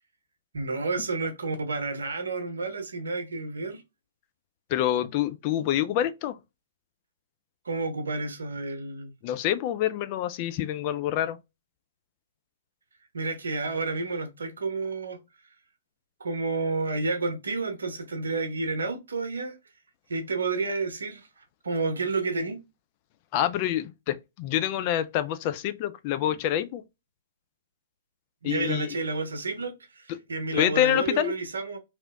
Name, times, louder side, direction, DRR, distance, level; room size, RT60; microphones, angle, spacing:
voice 1, 0.5-3.8 7.6-9.1 13.1-15.2 16.2-19.6 20.1-22.6 28.4-31.8, right 3 dB, 70° right, 0.8 m, -30 dB
voice 2, 4.7-6.4 9.2-11.4 23.3-26.8 28.4-29.0 30.5-31.3, left 12 dB, 40° left, 0.3 m, -26 dB
2.9 x 2.9 x 2.3 m
figure-of-eight pair, 115°, 0 cm